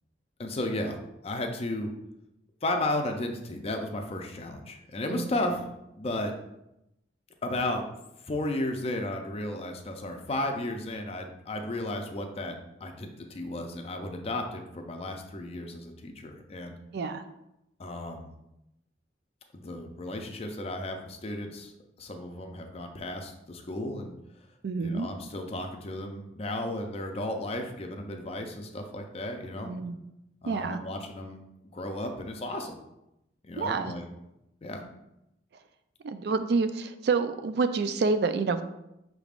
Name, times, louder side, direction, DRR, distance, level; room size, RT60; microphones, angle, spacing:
voice 1, 0.4-1.0 1.2-1.9 2.6-5.7 5.9-6.3 7.4-7.8 8.2-16.8 17.8-18.3 19.5-21.7 22.0-24.1 24.8-29.7 30.4-32.8 33.4-34.1 34.6-34.8, left 1 dB, 35° left, 4 dB, 0.5 m, -34 dB
voice 2, 16.9-17.2 24.6-25.1 29.6-30.0 30.4-30.8 33.6-34.0 36.0-38.6, right 4 dB, 60° right, 10 dB, 0.4 m, -28 dB
6.0 x 3.4 x 2.4 m, 0.87 s
head